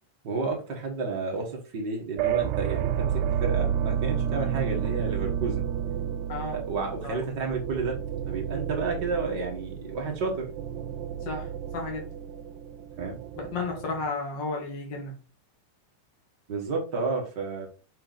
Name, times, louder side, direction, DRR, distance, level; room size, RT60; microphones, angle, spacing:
voice 1, 0.2-5.7 6.5-8.0 8.3-10.5 13.0-13.2 16.5-17.7, right 4 dB, 70° right, 0 dB, 1.0 m, -31 dB
sound 1, 2.2-14.1, right 9 dB, 90° right, 2.7 m, -31 dB
voice 2, 11.2-12.1 13.4-15.1, left 3 dB, 45° left, 0 dB, 1.6 m, -33 dB
6.9 x 5.7 x 4.0 m, 0.36 s
omnidirectional pair, 4.5 m